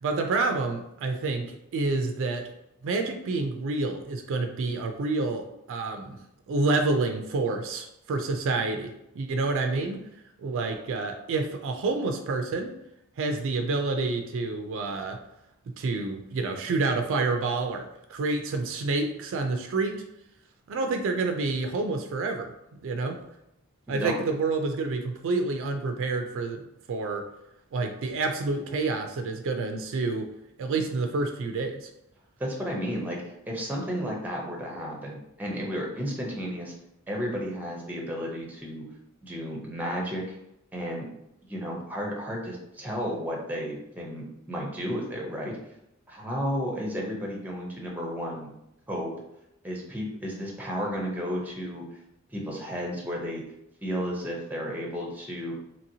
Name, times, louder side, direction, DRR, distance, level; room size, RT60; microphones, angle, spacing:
voice 1, 0.0-2.4 2.8-6.2 6.5-10.0 10.4-12.7 13.2-15.2 15.7-20.0 20.7-22.5 22.8-23.2 23.9-26.6 26.9-27.2 27.7-30.3 30.6-31.9, right 3 dB, 60° right, 5 dB, 0.3 m, -28 dB
voice 2, 23.9-24.3 32.4-36.7 37.1-38.8 39.2-40.4 40.7-41.1 41.4-45.5 46.1-48.5 48.9-49.1 49.6-51.8 52.3-53.4 53.8-55.5, equal, 10° right, -2 dB, 0.6 m, -33 dB
2.9 x 2.8 x 2.7 m, 0.83 s
head